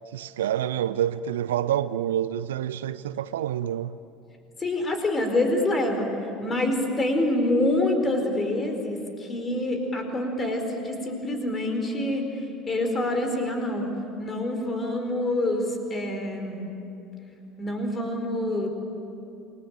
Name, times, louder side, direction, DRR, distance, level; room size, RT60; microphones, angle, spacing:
voice 1, 0.1-4.0, right 11 dB, 70° right, 0.5 m, -27 dB
voice 2, 4.6-6.1 6.4-12.3 12.7-13.9 14.2-16.7 17.6-18.7, left 1 dB, 25° left, 4.8 m, -26 dB
28.0 x 21.0 x 9.2 m
figure-of-eight pair, 65°, 0 cm